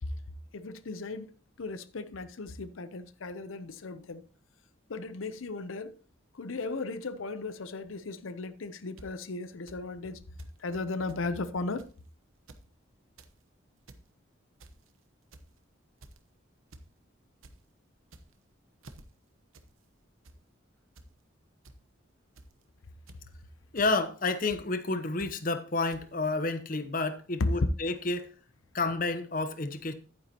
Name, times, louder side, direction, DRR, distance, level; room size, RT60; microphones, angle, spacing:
voice 1, 0.5-1.3 1.6-4.2 4.9-6.0 6.3-10.2 10.6-11.8, left 3 dB, 85° left, 0.7 m, -37 dB
sound 1, 9.0-9.1 9.7-9.8 10.4-10.6 10.8-10.9 11.1-11.2 11.8-12.0 12.4-12.6 13.0-13.3 13.7-14.0 14.6-14.9 15.3-15.6 16.0-16.3 16.7-16.9 17.2-17.5 18.0-18.4 18.8-19.0 19.5-19.7 20.0-20.4 21.0-21.1 21.6-21.8 22.4-22.6 23.1-23.3 23.8-23.9 24.5-24.6 25.2-25.3 25.9-26.0, right 2 dB, 85° right, 1.0 m, -51 dB
voice 2, 23.7-28.3 28.7-29.9, left 3 dB, 40° left, 0.8 m, -30 dB
11.0 x 9.5 x 2.9 m
head